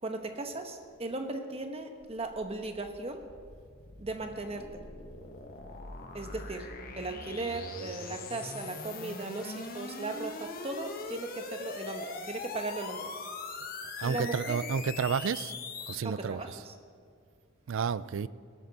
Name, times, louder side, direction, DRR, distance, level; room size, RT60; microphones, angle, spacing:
voice 1, 0.0-3.2 4.0-4.8 6.1-6.7 7.0-13.1 14.0-14.6 16.0-16.7, right 2 dB, 30° right, 1.1 m, -37 dB
sound 1, 2.0-16.0, left 4 dB, 45° left, 1.2 m, -42 dB
voice 2, 14.0-15.5 15.9-16.4 17.7-18.3, right 6 dB, 65° right, 0.4 m, -31 dB
17.0 x 13.5 x 4.1 m
head